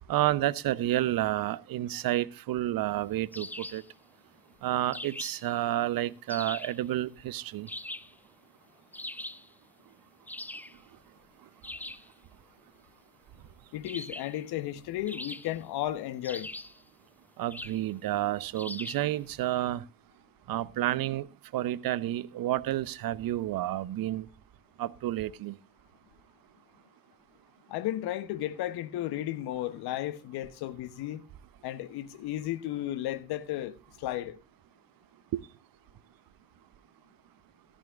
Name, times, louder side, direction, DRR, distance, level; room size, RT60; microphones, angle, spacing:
voice 1, 0.1-3.8 4.6-7.7 17.4-19.8 20.5-21.3 21.5-24.3 24.8-25.5 35.3-35.4, right 14 dB, 55° right, 0.9 m, -30 dB
sound 1, 3.3-3.9 4.9-5.5 6.3-6.8 7.7-8.2 8.9-9.5 10.3-10.8 11.6-12.1 13.9-14.4 15.1-15.7 16.2-16.8 17.5-17.9 18.6-19.1, left 1 dB, 5° left, 0.6 m, -41 dB
voice 2, 13.7-16.5 27.7-31.2 31.6-34.4, left 13 dB, 60° left, 1.1 m, -34 dB
14.0 x 13.5 x 2.5 m
hypercardioid pair, 45°, 43 cm